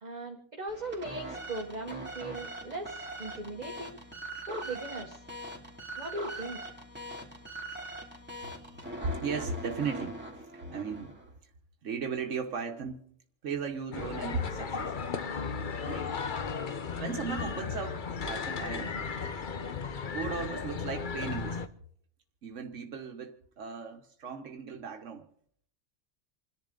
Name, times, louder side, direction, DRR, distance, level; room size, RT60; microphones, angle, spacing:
voice 1, 0.0-4.0 4.5-5.2 6.0-6.6, right 2 dB, 35° right, 1.5 m, -39 dB
sound 1, 0.7-11.3, right 1 dB, 10° right, 2.6 m, -42 dB
voice 2, 9.0-11.3 11.8-13.0 13.4-14.9 15.8-16.1 17.0-18.9 20.0-21.6 22.4-25.3, right 5 dB, 85° right, 1.4 m, -36 dB
sound 2, 13.9-21.7, left 5 dB, 45° left, 1.0 m, -35 dB
28.5 x 10.5 x 3.8 m
omnidirectional pair, 1.2 m